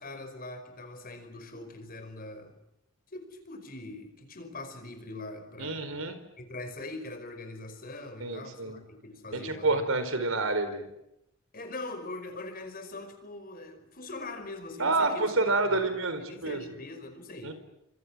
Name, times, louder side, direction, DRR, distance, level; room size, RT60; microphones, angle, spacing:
voice 1, 0.0-2.6 3.1-5.9 6.4-9.8 11.5-17.5, left 2 dB, 45° left, 7 dB, 5.4 m, -42 dB
voice 2, 5.6-6.2 8.2-8.7 9.3-10.8 14.8-16.6 17.4-17.5, right 3 dB, 80° right, 10 dB, 4.5 m, -28 dB
29.0 x 26.5 x 7.6 m, 0.87 s
head